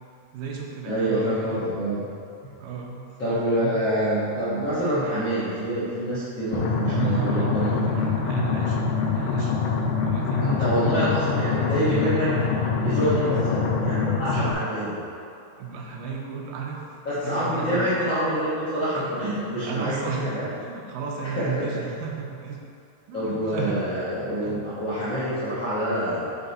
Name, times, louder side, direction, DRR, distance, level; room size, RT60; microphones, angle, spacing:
voice 1, 0.3-1.6 2.6-3.8 6.9-8.8 9.1-9.5 10.0-10.9 13.0-13.4 14.3-14.6 15.6-16.8 17.1-17.8 19.6-22.6 23.1-23.8 24.4-24.7, right 6 dB, 85° right, -1 dB, 2.4 m, -33 dB
voice 2, 0.8-2.1 3.2-7.8 10.4-15.0 17.0-20.5 21.4-21.7 23.1-26.4, equal, 60° left, -13 dB, 1.3 m, -26 dB
sound 1, 6.5-14.5, left 5 dB, 80° left, 2.0 m, -25 dB
8.6 x 3.2 x 4.0 m, 2.6 s
omnidirectional pair, 3.9 m